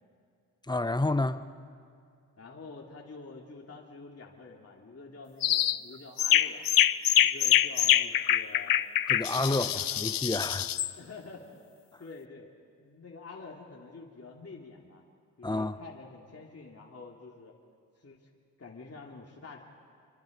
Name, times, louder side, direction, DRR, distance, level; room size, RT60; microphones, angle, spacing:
voice 1, 0.7-1.4 9.1-10.7 15.4-15.8, left 2 dB, 10° left, 1.1 m, -29 dB
voice 2, 2.4-6.6 7.1-8.7 9.3-10.0 11.0-11.7 12.0-12.5 12.8-15.0 15.4-17.5 18.0-18.3 18.6-19.6, left 4 dB, 35° left, 2.9 m, -47 dB
sound 1, 5.4-5.8 6.2-10.9, left 11 dB, 55° left, 0.7 m, -25 dB
28.5 x 24.5 x 5.3 m
supercardioid pair, 50°, 40 cm